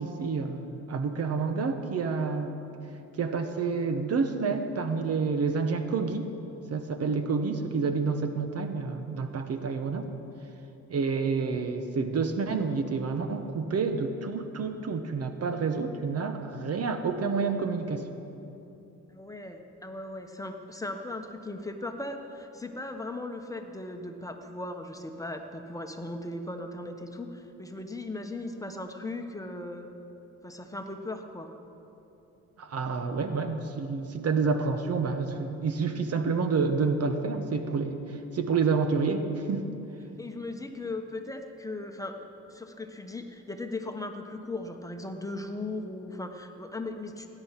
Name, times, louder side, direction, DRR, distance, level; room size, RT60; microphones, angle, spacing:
voice 1, 0.0-2.6 3.2-6.3 6.7-10.1 10.9-18.1 32.6-39.7, right 4 dB, 55° right, 7 dB, 1.1 m, -29 dB
voice 2, 19.1-29.9 30.4-31.5 40.2-42.2 42.5-47.3, left 2 dB, 10° left, 5 dB, 1.2 m, -38 dB
17.0 x 10.5 x 5.9 m, 2.9 s
cardioid pair, 90°, 30 cm